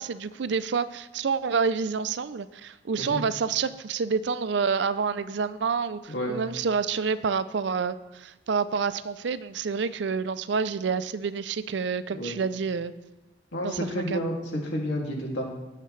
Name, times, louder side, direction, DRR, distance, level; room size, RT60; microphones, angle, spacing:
voice 1, 0.0-12.9 13.6-14.2, right 5 dB, 65° right, 14 dB, 0.4 m, -28 dB
voice 2, 6.1-6.4 12.1-12.4 13.5-15.5, equal, 70° left, -1 dB, 2.5 m, -30 dB
18.0 x 6.6 x 3.3 m, 1.1 s
head